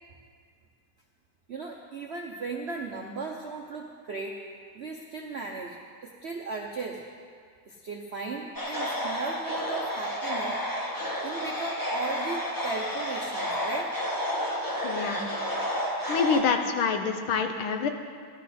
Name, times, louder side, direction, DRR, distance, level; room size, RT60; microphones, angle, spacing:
voice 1, 1.5-4.4 4.7-5.8 6.0-7.0 7.7-10.6 11.2-13.9, right 3 dB, 65° right, 0 dB, 0.6 m, -36 dB
sound 1, 8.5-16.4, equal, 10° left, 1.1 m, -31 dB
voice 2, 14.8-15.2 16.1-17.9, left 6 dB, 85° left, 6 dB, 1.7 m, -26 dB
15.0 x 12.0 x 4.2 m, 2.1 s
omnidirectional pair, 2.2 m